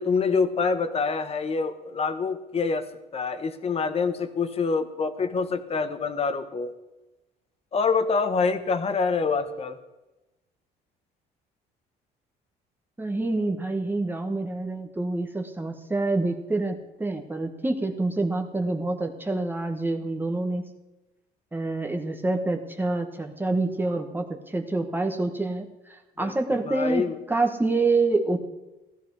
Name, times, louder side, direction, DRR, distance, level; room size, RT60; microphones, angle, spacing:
voice 1, 0.0-2.9 3.1-6.7 7.7-9.8 26.2-27.2, left 4 dB, 35° left, 10 dB, 1.3 m, -26 dB
voice 2, 13.0-20.7 21.5-28.4, right 2 dB, 10° right, 4 dB, 1.2 m, -27 dB
16.0 x 12.0 x 4.8 m, 1.0 s
cardioid pair, 110°, 17 cm